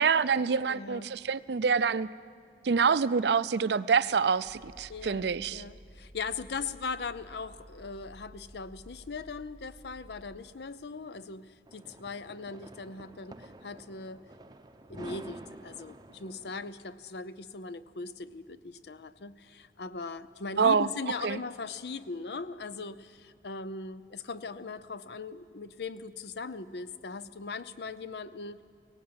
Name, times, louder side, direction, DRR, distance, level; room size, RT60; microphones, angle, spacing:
voice 1, 0.0-2.1 2.6-5.6 20.6-20.9 21.2-21.4, right 6 dB, 70° right, 17 dB, 0.5 m, -26 dB
voice 2, 0.7-1.1 4.9-14.2 14.9-28.6, left 4 dB, 70° left, 15 dB, 0.6 m, -39 dB
sound 1, 4.4-10.4, equal, 20° left, 1.9 m, -53 dB
sound 2, 11.7-16.7, right 1 dB, 25° right, 0.7 m, -49 dB
17.5 x 17.0 x 8.7 m, 2.2 s
head